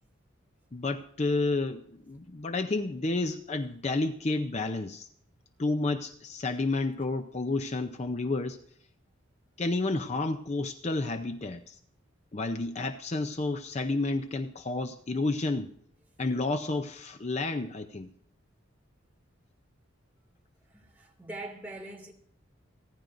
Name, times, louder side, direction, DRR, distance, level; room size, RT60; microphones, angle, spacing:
voice 1, 0.7-5.1 5.6-8.6 9.6-11.8 12.3-15.7 16.2-18.1, left 2 dB, 35° left, 0.6 m, -30 dB
voice 2, 20.7-22.1, right 2 dB, 10° right, 2.3 m, -42 dB
29.5 x 10.5 x 2.6 m
head